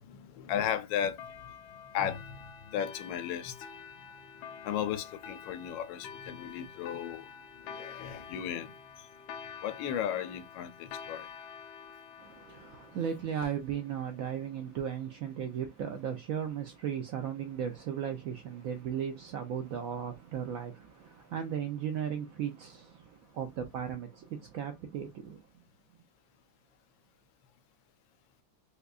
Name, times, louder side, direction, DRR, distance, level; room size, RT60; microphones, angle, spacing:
voice 1, 0.1-1.2 1.9-3.6 4.6-7.3 7.7-8.7 9.6-11.3, left 9 dB, 85° left, 1.3 m, -35 dB
sound 1, 1.2-14.3, left 7 dB, 70° left, 1.0 m, -48 dB
voice 2, 12.2-25.6, right 8 dB, 85° right, 0.7 m, -36 dB
5.0 x 2.2 x 2.3 m
omnidirectional pair, 2.0 m